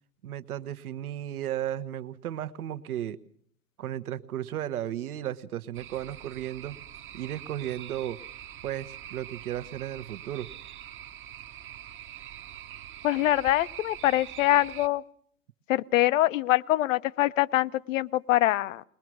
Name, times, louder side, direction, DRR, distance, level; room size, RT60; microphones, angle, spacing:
voice 1, 0.2-3.2 3.8-6.8 7.1-8.2 8.6-10.5, right 11 dB, 65° right, 13 dB, 1.3 m, -34 dB
sound 1, 5.7-14.9, right 11 dB, 25° right, 1.1 m, -44 dB
voice 2, 13.0-15.0 15.7-18.8, left 15 dB, 55° left, 19 dB, 0.8 m, -24 dB
21.5 x 21.0 x 6.2 m, 0.63 s
figure-of-eight pair, 100°, 47 cm